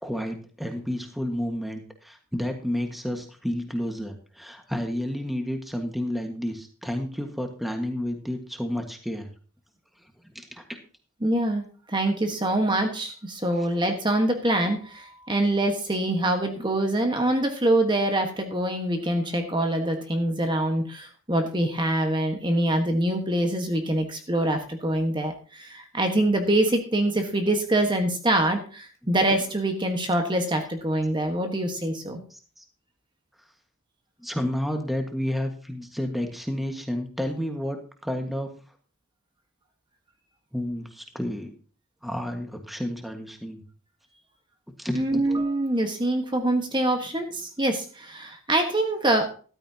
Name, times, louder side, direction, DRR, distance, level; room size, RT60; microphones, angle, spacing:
voice 1, 0.0-9.3 10.3-10.6 32.3-32.6 34.2-38.5 40.5-41.5 42.0-43.6 44.8-45.2, equal, ahead, 4 dB, 1.5 m, -31 dB
voice 2, 11.2-11.6 11.9-32.2 44.9-49.3, right 1 dB, 20° right, 4 dB, 1.4 m, -25 dB
14.0 x 13.0 x 2.8 m, 0.40 s
head